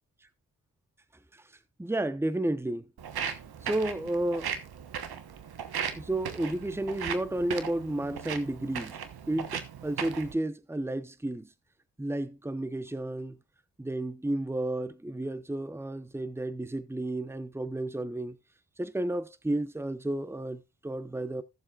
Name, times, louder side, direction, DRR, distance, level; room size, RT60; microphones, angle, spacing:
voice 1, 1.8-2.9 3.6-4.5 5.9-9.0 9.3-11.5 12.0-13.4 13.8-18.4 18.8-21.4, right 1 dB, 5° right, 0.9 m, -32 dB
Walk footsteps, 3.0-10.3, right 7 dB, 80° right, 1.2 m, -37 dB
16.0 x 7.2 x 2.4 m
supercardioid pair, 40°, 37 cm